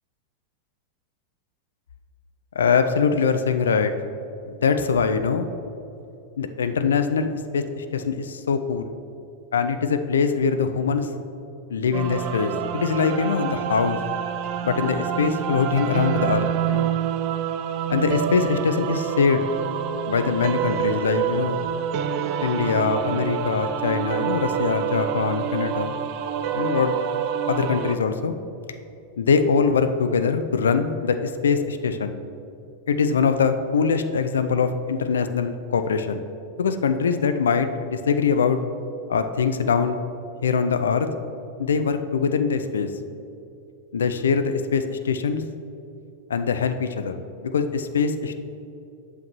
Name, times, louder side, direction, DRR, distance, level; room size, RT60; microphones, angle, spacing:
voice 1, 2.6-3.9 4.5-5.5 6.4-8.9 9.5-11.1 11.7-14.0 14.6-16.9 17.9-19.5 20.1-21.6 22.4-26.0 26.5-26.9 27.5-28.3 29.2-32.2 32.9-36.2 36.6-38.6 39.1-40.0 40.4-41.1 41.6-42.9 43.9-45.4 46.3-47.2 47.4-48.4, left 5 dB, 65° left, 9 dB, 0.4 m, -23 dB
sound 1, 11.9-28.0, right 9 dB, 45° right, 0.3 m, -27 dB
8.0 x 7.1 x 3.0 m, 2.8 s
figure-of-eight pair, 90°, 0 cm